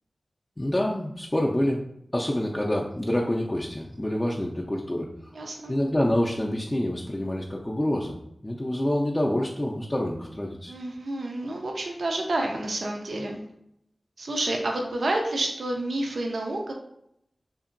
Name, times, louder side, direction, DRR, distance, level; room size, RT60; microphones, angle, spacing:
voice 1, 0.6-1.9 2.1-5.1 5.7-8.1 8.4-10.7, left 1 dB, 25° left, -2 dB, 0.3 m, -27 dB
voice 2, 5.3-5.7 10.7-13.4 14.2-16.7, right 2 dB, 85° right, 1 dB, 0.4 m, -29 dB
2.8 x 2.5 x 2.5 m, 0.76 s
cardioid pair, 45°, 0 cm